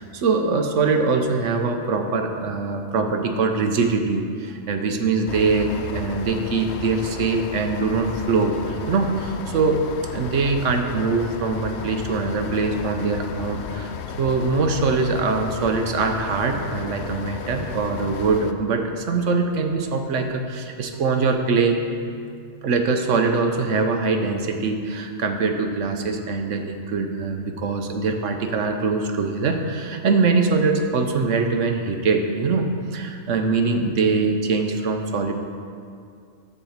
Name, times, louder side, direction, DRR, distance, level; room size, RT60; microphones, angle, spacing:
voice 1, 0.0-9.8 10.1-21.8 22.6-35.3, right 4 dB, 65° right, 5 dB, 1.1 m, -23 dB
sound 1, 5.3-18.5, left 7 dB, 65° left, 0.7 m, -34 dB
sound 2, 20.9-24.4, right 3 dB, 85° right, 1.7 m, -44 dB
11.0 x 4.4 x 7.1 m, 2.3 s
omnidirectional pair, 1.5 m